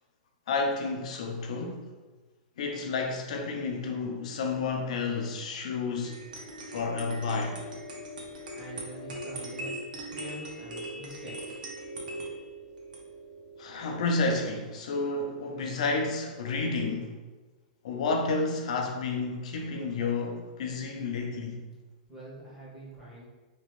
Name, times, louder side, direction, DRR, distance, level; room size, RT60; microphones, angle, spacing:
voice 1, 0.5-1.8 2.6-6.2 6.7-7.6 13.6-17.2 17.8-21.6, left 3 dB, 50° left, 2 dB, 0.5 m, -30 dB
sound 1, 6.0-14.3, right 1 dB, 70° right, 0.7 m, -40 dB
voice 2, 8.6-11.6 22.1-23.3, right 1 dB, 5° right, -8 dB, 0.7 m, -45 dB
2.9 x 2.5 x 3.1 m, 1.3 s
supercardioid pair, 180°, 5 cm